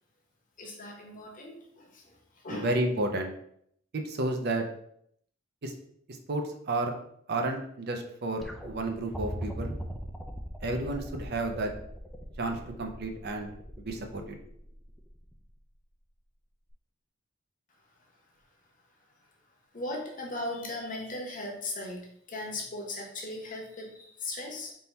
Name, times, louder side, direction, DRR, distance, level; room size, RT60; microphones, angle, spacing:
voice 1, 0.6-2.2 2.4-2.7 19.7-22.0 22.3-24.7, left 2 dB, 40° left, 0 dB, 1.0 m, -38 dB
voice 2, 2.5-3.3 3.9-4.6 5.6-5.7 6.3-7.0 7.3-9.8 10.6-11.7 12.4-13.5 13.8-14.4, right 2 dB, 50° right, 4 dB, 0.5 m, -31 dB
sound 1, 8.4-15.6 16.7-16.8, equal, ahead, 0.4 m, -41 dB
3.7 x 2.8 x 4.1 m, 0.69 s
head